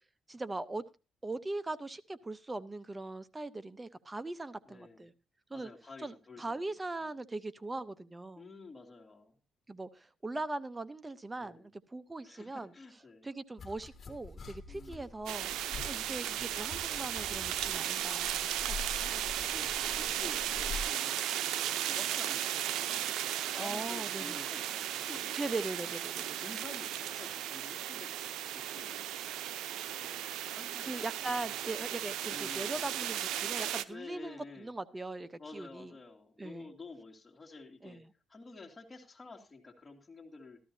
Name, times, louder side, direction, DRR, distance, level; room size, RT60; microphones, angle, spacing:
voice 1, 0.3-0.8 1.2-5.1 5.5-5.7 6.0-8.5 9.7-12.7 13.2-19.5 23.6-24.4 25.4-26.4 30.8-35.9 36.4-36.7 37.8-38.0, right 2 dB, 20° right, 14 dB, 0.7 m, -40 dB
voice 2, 4.6-5.1 5.5-6.7 7.0-7.1 8.4-9.4 11.4-11.7 12.2-13.3 14.7-15.1 15.7-16.3 18.4-18.8 19.4-23.0 23.5-25.5 25.8-25.9 26.3-29.0 29.9-31.3 32.3-32.7 33.9-34.7 35.4-38.0 38.3-40.6, left 3 dB, 25° left, 1 dB, 2.6 m, -51 dB
sound 1, 13.6-20.9, left 4 dB, 45° left, 1.9 m, -45 dB
sound 2, 15.3-33.8, right 11 dB, 85° right, 0.6 m, -36 dB
14.0 x 13.0 x 2.7 m, 0.29 s
cardioid pair, 90°, 0 cm